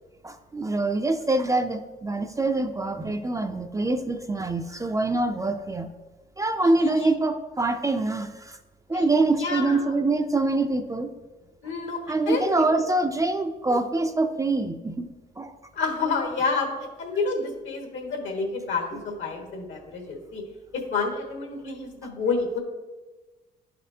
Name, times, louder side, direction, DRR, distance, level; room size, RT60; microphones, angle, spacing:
voice 1, 0.2-5.9 6.4-8.6 8.9-11.1 12.1-15.1 15.4-15.5, right 2 dB, 15° right, 7 dB, 0.4 m, -25 dB
voice 2, 6.6-7.1 8.9-9.8 11.6-12.0 12.3-12.6 15.7-20.4 20.7-22.6, left 4 dB, 75° left, 2 dB, 1.4 m, -29 dB
11.0 x 4.2 x 2.7 m, 1.2 s
cardioid pair, 90°, 20 cm